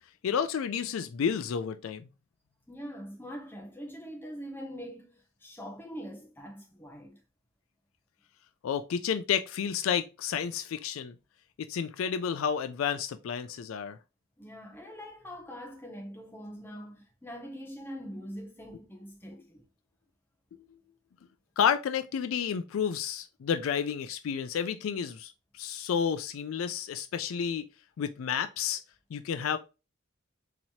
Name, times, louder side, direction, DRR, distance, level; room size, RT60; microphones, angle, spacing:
voice 1, 0.2-2.1 8.6-11.2 11.6-14.0 21.6-27.6 28.0-28.8 29.1-29.6, left 7 dB, 70° left, 0.3 m, -31 dB
voice 2, 2.7-7.2 14.4-19.6, equal, 10° left, 0.9 m, -43 dB
4.2 x 3.0 x 2.7 m
head